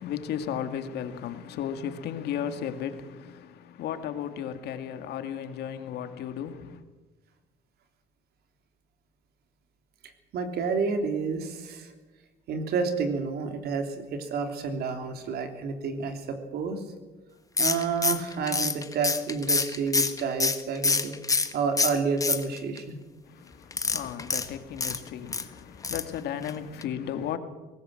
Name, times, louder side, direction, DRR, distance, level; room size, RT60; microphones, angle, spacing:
voice 1, 0.0-6.8 23.3-27.4, left 9 dB, 75° left, 2.1 m, -35 dB
voice 2, 10.3-11.9 12.5-16.8 17.6-21.2 21.5-23.0, right 5 dB, 70° right, 3.3 m, -30 dB
sound 1, 17.6-21.5 21.8-22.8 23.7-25.4 25.8-26.1 26.4-26.5 26.8-26.9, left 4 dB, 20° left, 1.5 m, -26 dB
22.5 x 19.0 x 7.8 m
cardioid pair, 110°, 17 cm